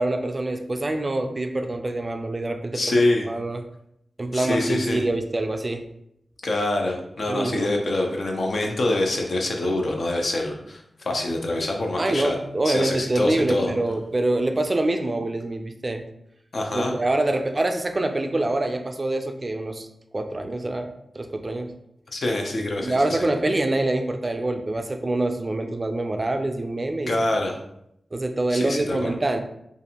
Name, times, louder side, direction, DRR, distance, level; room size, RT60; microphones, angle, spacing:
voice 1, 0.0-3.0 3.3-3.6 4.2-5.8 7.3-7.7 12.0-16.0 16.7-19.9 20.1-21.7 22.8-27.1 28.1-29.4, right 2 dB, 40° right, 6 dB, 0.3 m, -25 dB
voice 2, 2.7-3.3 4.3-5.0 6.4-12.4 12.6-13.7 16.5-16.9 22.1-23.3 27.1-27.5 28.5-29.1, left 2 dB, 65° left, 1 dB, 0.5 m, -25 dB
2.5 x 2.5 x 2.8 m, 0.77 s
cardioid pair, 45°, 0 cm